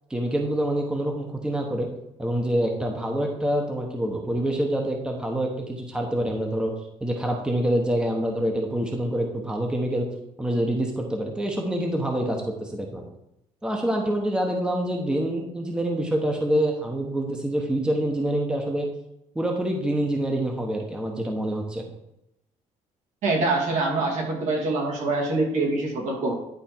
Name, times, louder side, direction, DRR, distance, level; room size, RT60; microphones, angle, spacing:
voice 1, 0.1-1.9 2.2-6.7 7.0-10.1 10.4-13.0 13.6-18.9 19.3-21.8, right 1 dB, 5° right, 1 dB, 1.0 m, -26 dB
voice 2, 23.2-26.3, right 2 dB, 75° right, -1 dB, 2.5 m, -24 dB
10.5 x 4.3 x 4.5 m, 0.83 s
cardioid pair, 145°, 13 cm